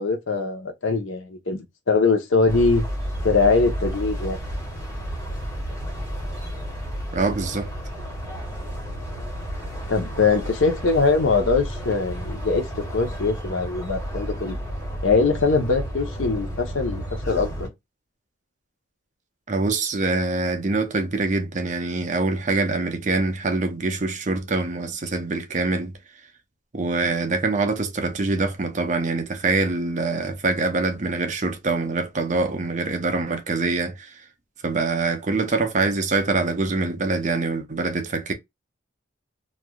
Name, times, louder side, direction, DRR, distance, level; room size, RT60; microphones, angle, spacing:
voice 1, 0.0-2.9 3.2-4.4 9.9-14.6 15.0-17.7, left 4 dB, 85° left, 0.9 m, -22 dB
sound 1, 2.5-17.7, equal, 15° left, 1.6 m, -32 dB
voice 2, 7.1-7.7 19.5-25.9 26.7-34.1 34.6-38.3, right 3 dB, 40° right, 0.6 m, -24 dB
3.2 x 2.6 x 2.3 m
head